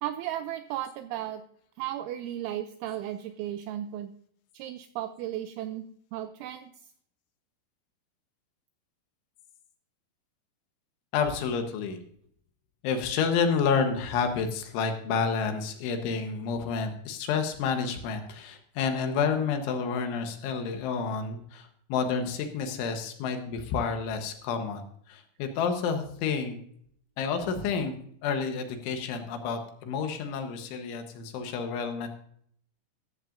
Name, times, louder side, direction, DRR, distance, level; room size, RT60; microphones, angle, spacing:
voice 1, 0.0-1.4 1.8-4.1 4.5-6.7, right 12 dB, 85° right, 9 dB, 2.7 m, -35 dB
voice 2, 11.1-12.0 12.8-26.5 27.2-27.9 28.2-32.1, left 5 dB, 75° left, 6 dB, 3.4 m, -29 dB
14.0 x 13.5 x 2.6 m, 0.64 s
omnidirectional pair, 5.9 m